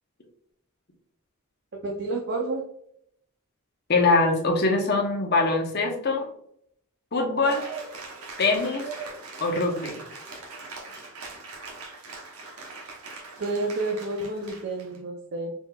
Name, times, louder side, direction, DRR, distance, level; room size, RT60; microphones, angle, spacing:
voice 1, 1.8-2.6 13.4-15.5, right 2 dB, 50° right, 1 dB, 0.5 m, -30 dB
voice 2, 3.9-6.3 7.1-7.7 8.4-8.9 9.4-10.0, left 3 dB, 45° left, 2 dB, 0.8 m, -23 dB
Cheering / Applause, 7.4-15.0, right 4 dB, 85° right, 1.0 m, -41 dB
4.1 x 3.8 x 2.3 m, 0.70 s
head